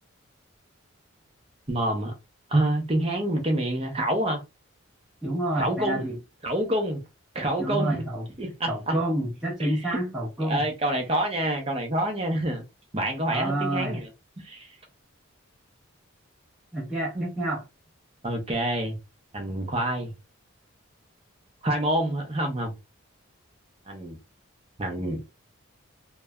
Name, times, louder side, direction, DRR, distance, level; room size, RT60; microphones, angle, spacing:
voice 1, 1.7-2.1 2.5-4.4 5.6-6.0 6.4-7.0 7.3-8.1 8.4-9.0 9.6-10.0 10.4-12.6 12.9-14.1 14.4-14.7 17.1-17.2 18.2-19.0 19.3-20.1 21.6-22.7 23.9-24.2 24.8-25.2, right 1 dB, 25° right, 0.7 m, -27 dB
voice 2, 5.2-6.2 7.6-8.2 8.7-10.7 13.3-14.0 16.7-17.6, right 1 dB, 5° right, 1.0 m, -28 dB
3.1 x 2.2 x 2.3 m
head